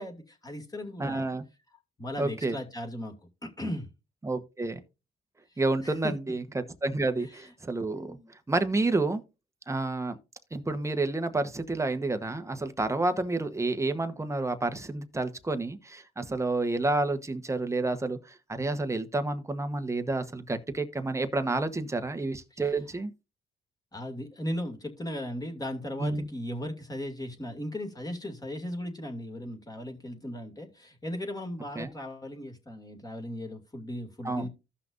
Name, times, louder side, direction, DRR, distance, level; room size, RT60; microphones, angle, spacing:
voice 1, 0.0-1.3 2.0-3.1 3.4-3.9 5.8-6.1 7.2-7.5 7.9-8.3 22.5-22.6 23.9-34.5, left 1 dB, 20° left, 2.4 m, -37 dB
voice 2, 1.0-1.4 2.2-2.6 4.2-4.8 5.6-8.2 8.5-9.2 9.7-10.2 10.5-18.2 18.5-23.1 26.0-26.3 31.8-31.9 34.2-34.5, right 2 dB, 15° right, 1.1 m, -29 dB
15.0 x 5.9 x 2.6 m
cardioid pair, 90°, 20 cm